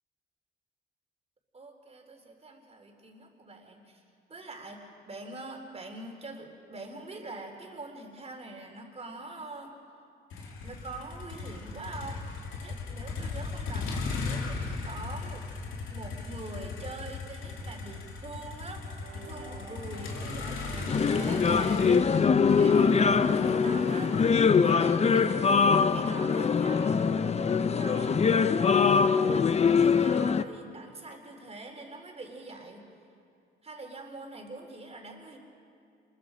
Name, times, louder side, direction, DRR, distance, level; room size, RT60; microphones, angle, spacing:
voice 1, 1.5-4.0 4.3-9.8 10.6-12.2 12.6-15.5 15.9-22.1 22.5-25.6 25.9-27.0 27.7-32.9 33.6-35.4, right 2 dB, 30° right, 2 dB, 3.8 m, -44 dB
Motor vehicle (road), 10.3-26.4, left 4 dB, 80° left, 2.9 m, -38 dB
sound 1, 19.0-28.7, right 3 dB, 85° right, 4.9 m, -46 dB
sound 2, 20.9-30.4, left 5 dB, 35° left, 0.6 m, -23 dB
27.0 x 22.0 x 5.1 m, 2.4 s
cardioid pair, 90°, 20 cm